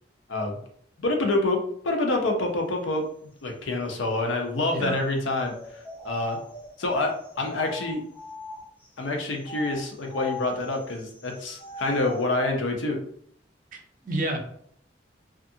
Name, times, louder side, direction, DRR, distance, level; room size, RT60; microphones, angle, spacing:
voice 1, 1.0-6.4 6.8-8.0 9.0-13.0, left 2 dB, 80° left, 2 dB, 0.6 m, -27 dB
sound 1, 5.5-8.9 9.4-12.3, left 1 dB, 10° left, 0.6 m, -40 dB
voice 2, 13.7-14.4, right 1 dB, 45° right, 4 dB, 0.5 m, -30 dB
2.5 x 2.4 x 2.6 m, 0.65 s
head